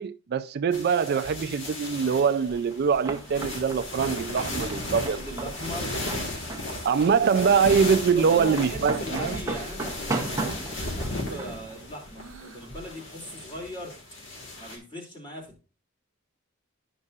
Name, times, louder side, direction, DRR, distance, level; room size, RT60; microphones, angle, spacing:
voice 1, 0.0-5.2 6.8-9.4, right 6 dB, 50° right, 0.4 m, -23 dB
sound 1, 0.7-14.8, left 1 dB, 65° left, 1.8 m, -36 dB
sound 2, 2.5-12.9, right 2 dB, 15° right, 0.9 m, -37 dB
Breathing, 4.5-7.8 8.2-8.6 8.9-9.9 10.3-12.8, right 3 dB, 85° right, 0.8 m, -46 dB
voice 2, 4.6-6.0 8.1-13.9 14.6-15.6, equal, 25° left, 2.5 m, -39 dB
11.0 x 5.4 x 2.4 m
head